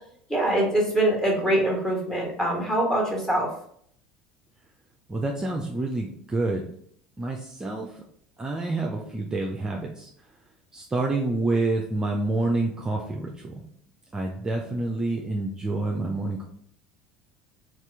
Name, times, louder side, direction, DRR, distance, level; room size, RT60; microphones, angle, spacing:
voice 1, 0.3-3.5, right 1 dB, 10° left, -2 dB, 1.5 m, -23 dB
voice 2, 5.1-6.7 7.2-7.9 8.4-10.1 10.7-13.6 14.1-16.4, right 2 dB, 20° right, 0 dB, 0.5 m, -28 dB
4.3 x 2.4 x 3.4 m, 0.65 s
figure-of-eight pair, 65°, 4 cm